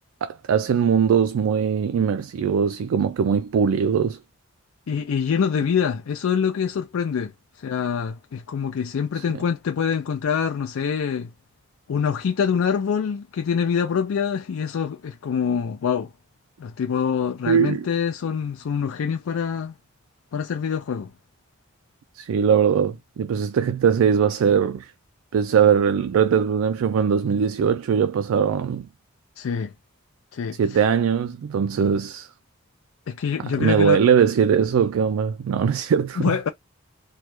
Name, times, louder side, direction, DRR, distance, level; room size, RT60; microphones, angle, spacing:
voice 1, 0.2-4.2 9.1-9.2 17.5-17.9 22.2-24.9 25.3-28.9 30.6-32.3 33.6-36.4, right 7 dB, 80° right, 0.3 m, -21 dB
voice 2, 4.9-7.3 7.6-11.3 11.9-16.1 16.6-19.7 20.3-21.1 29.4-29.7 30.3-30.8 33.1-34.0 36.2-36.5, left 7 dB, 85° left, 0.4 m, -25 dB
3.1 x 2.2 x 3.0 m
head